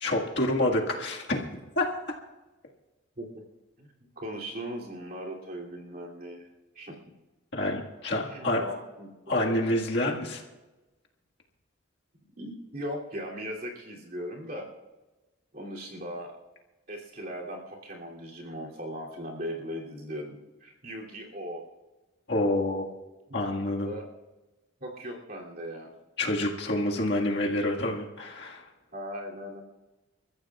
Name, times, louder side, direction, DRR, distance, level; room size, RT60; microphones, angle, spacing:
voice 1, 0.0-1.4 1.8-1.9 7.5-8.6 9.3-10.4 22.3-22.9 23.3-23.9 26.2-28.6, left 1 dB, 55° left, -1 dB, 1.8 m, -27 dB
voice 2, 4.2-6.5 6.7-7.1 8.2-9.1 9.4-9.7 12.4-14.7 15.5-16.4 16.9-21.6 23.8-24.0 24.8-25.9 28.9-29.6, equal, 45° right, -2 dB, 2.9 m, -38 dB
29.5 x 14.0 x 2.4 m, 1.1 s
head